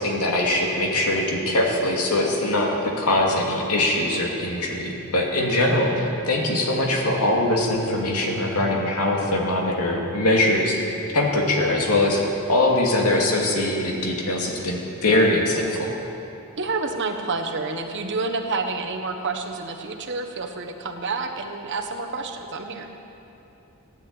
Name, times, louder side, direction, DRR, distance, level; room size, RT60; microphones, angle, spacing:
voice 1, 0.0-10.9 11.1-15.9, left 1 dB, 90° left, -1 dB, 2.5 m, -22 dB
voice 2, 16.6-22.9, right 3 dB, 55° right, 4 dB, 1.3 m, -29 dB
15.5 x 10.0 x 8.9 m, 3.0 s
head